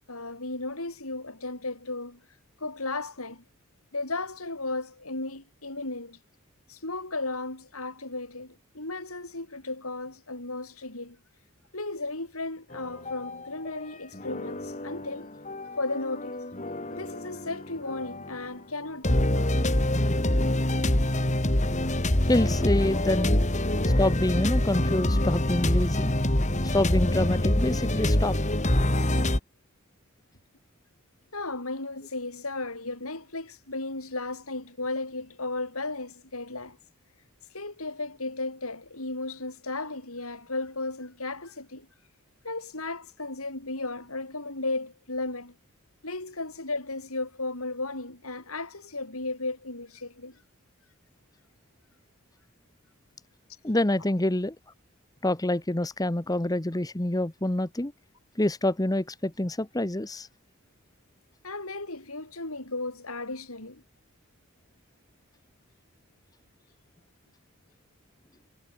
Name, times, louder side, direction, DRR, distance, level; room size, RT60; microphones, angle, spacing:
voice 1, 0.1-2.2 2.6-3.4 3.9-6.2 6.7-11.2 11.7-15.3 15.8-16.4 16.9-19.6 31.3-36.8 37.5-41.9 42.4-45.5 46.0-50.4 61.4-63.8, left 2 dB, 80° left, 7.2 m, -35 dB
sound 1, 12.7-13.8 14.1-18.5 19.0-29.4, left 1 dB, 35° left, 2.6 m, -26 dB
voice 2, 22.3-23.4 23.8-26.1 26.6-28.4 53.6-54.5 55.2-57.9 58.4-60.3, left 1 dB, 15° left, 1.0 m, -26 dB
head